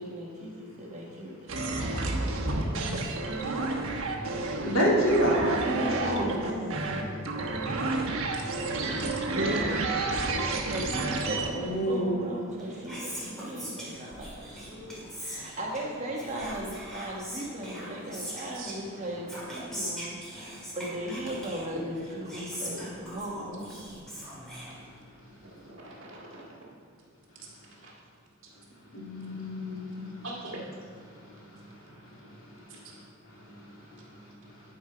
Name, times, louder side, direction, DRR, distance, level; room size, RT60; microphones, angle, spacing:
voice 1, 0.0-3.0 5.7-7.5 10.7-23.9, right 1 dB, 35° right, -2 dB, 1.3 m, -37 dB
sound 1, 1.5-11.5, right 3 dB, 80° right, 1.0 m, -30 dB
voice 2, 4.6-5.8 6.0-6.4 11.5-12.2 12.9-13.0 14.7-14.8 28.9-30.1 32.2-32.5 33.4-33.6, equal, 75° left, -4 dB, 2.4 m, -28 dB
voice 3, 9.3-10.0 18.5-19.0 19.5-19.6 24.7-24.8 25.5-26.7 27.8-27.9 30.2-30.5 32.7-32.8, right 1 dB, 65° right, -4 dB, 1.9 m, -38 dB
Whispering, 12.4-25.3, equal, ahead, 1.9 m, -42 dB
11.0 x 4.6 x 4.9 m, 2.2 s
head